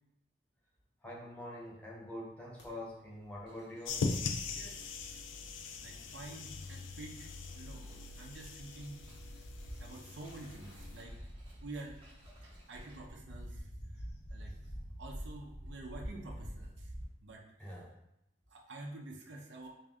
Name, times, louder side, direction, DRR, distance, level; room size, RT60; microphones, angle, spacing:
voice 1, 1.0-4.0 6.3-6.4 7.8-8.1 17.6-17.9, left 1 dB, 5° left, -4 dB, 0.6 m, -45 dB
sound 1, 2.6-2.7 3.2-3.5 3.8-5.3 5.9-6.0 7.7-17.1, equal, 65° left, 1.0 m, -47 dB
sound 2, 3.4-13.0, right 1 dB, 25° right, 0.9 m, -64 dB
wind-up toy, 3.8-11.0, left 4 dB, 80° left, 0.4 m, -41 dB
voice 2, 4.5-5.2 5.8-7.3 7.6-7.9 8.2-9.0 9.8-11.2 11.6-12.0 12.7-13.6 14.3-14.5 15.0-16.9 17.2-17.4 18.5-19.7, right 2 dB, 65° right, 1 dB, 0.5 m, -48 dB
3.5 x 2.5 x 3.5 m, 0.83 s
head